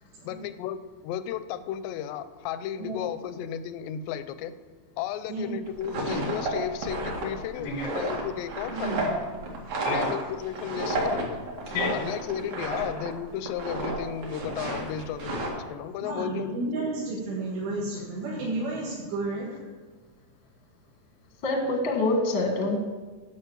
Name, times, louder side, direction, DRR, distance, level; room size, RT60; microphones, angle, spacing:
voice 1, 0.3-4.5 5.0-9.1 9.9-11.4 11.9-16.6, left 10 dB, 85° left, 13 dB, 2.8 m, -34 dB
voice 2, 5.3-5.6 8.7-9.1 9.7-9.8 16.0-19.6, right 2 dB, 85° right, -7 dB, 4.1 m, -32 dB
sound 1, 5.7-13.1 13.4-14.0 14.2-15.5, right 2 dB, 50° right, 2.8 m, -31 dB
voice 3, 7.5-7.9 9.8-10.1 11.7-11.9 21.4-22.8, left 2 dB, 55° left, 2 dB, 1.3 m, -26 dB
12.0 x 5.7 x 7.1 m, 1.3 s
omnidirectional pair, 4.8 m